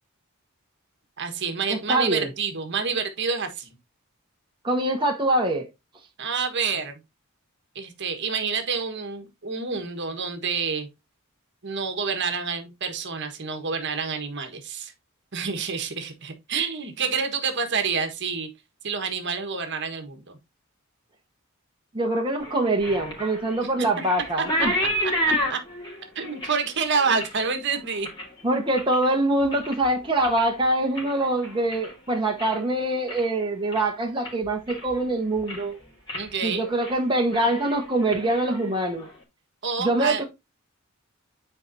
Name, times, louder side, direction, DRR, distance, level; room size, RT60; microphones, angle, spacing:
voice 1, 1.2-3.7 6.2-7.0 7.7-10.9 11.6-14.9 15.3-18.5 18.8-20.4 24.4-24.5 25.0-25.1 25.5-25.6 26.1-28.1 36.1-36.7 39.6-40.2, right 5 dB, 55° right, 1.5 m, -28 dB
voice 2, 1.7-2.3 4.6-5.7 21.9-24.7 28.4-35.7 36.4-39.1 39.8-40.2, right 1 dB, 25° right, 1.3 m, -24 dB
sound 1, 22.4-29.1 29.4-29.9 30.2-32.6 32.9-33.4 33.7-33.8 34.2-35.0 35.3-35.7 36.1-36.3 36.6-37.0 37.2-39.1, equal, 20° left, 3.2 m, -31 dB
9.6 x 4.7 x 2.7 m
head